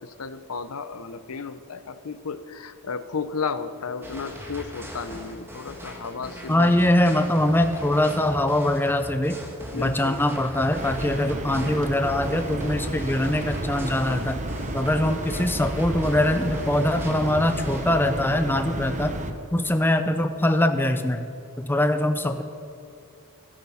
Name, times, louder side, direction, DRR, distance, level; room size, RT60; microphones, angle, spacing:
voice 1, 0.0-7.0 9.7-10.2 14.9-15.1, left 5 dB, 70° left, 12 dB, 0.7 m, -34 dB
sound 1, 4.0-17.9, equal, 10° right, 1.7 m, -39 dB
voice 2, 6.5-9.4 9.7-14.4 14.7-19.2 19.5-21.2 21.6-22.4, left 1 dB, 10° left, 7 dB, 0.5 m, -23 dB
sound 2, 10.7-19.3, right 1 dB, 35° right, 0.9 m, -32 dB
16.0 x 8.8 x 5.6 m, 2.8 s
head